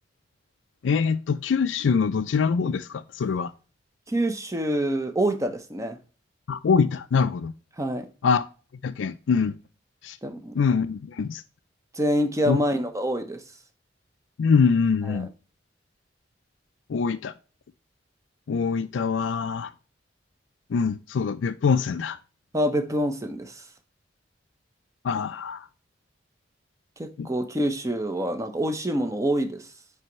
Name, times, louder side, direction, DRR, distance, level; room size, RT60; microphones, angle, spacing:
voice 1, 0.8-3.5 6.5-7.5 8.2-8.4 8.8-9.5 10.0-10.2 10.6-11.4 12.5-12.6 14.4-15.3 16.9-17.3 18.5-19.7 20.7-22.2 25.0-25.7 27.2-27.3, left 5 dB, 80° left, 0.4 m, -24 dB
voice 2, 4.1-6.0 7.8-8.1 10.2-10.5 11.9-13.4 15.1-15.3 22.5-23.6 27.0-29.6, equal, 15° right, 0.8 m, -26 dB
9.0 x 3.4 x 3.0 m
head